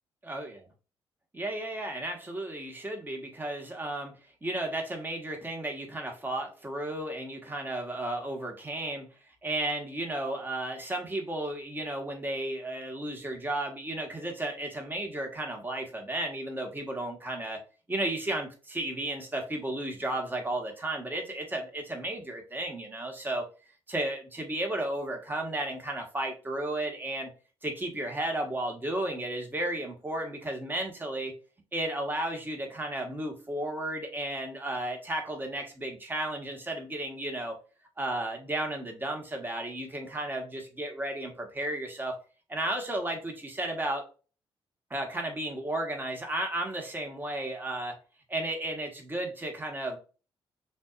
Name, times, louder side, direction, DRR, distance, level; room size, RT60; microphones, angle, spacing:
voice 1, 0.2-0.6 1.3-4.1 4.4-9.1 9.4-17.6 17.9-23.4 23.9-27.3 27.6-31.3 31.7-37.6 38.0-42.2 42.5-44.0 44.9-47.9 48.3-50.0, right 1 dB, 20° right, 2 dB, 1.7 m, -33 dB
6.1 x 2.8 x 2.5 m, 0.35 s
cardioid pair, 70°, 10 cm